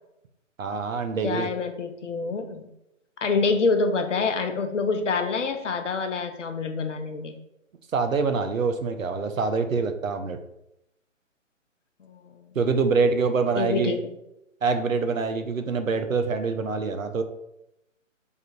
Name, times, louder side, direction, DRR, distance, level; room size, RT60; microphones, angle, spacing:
voice 1, 0.6-1.5 7.9-10.4 12.6-14.0 14.6-17.2, right 4 dB, 85° right, 8 dB, 0.6 m, -25 dB
voice 2, 1.2-2.7 3.2-7.3 12.1-12.4 13.5-14.1, left 4 dB, 65° left, 7 dB, 0.7 m, -26 dB
3.5 x 2.3 x 4.3 m, 0.84 s
figure-of-eight pair, 140°, 39 cm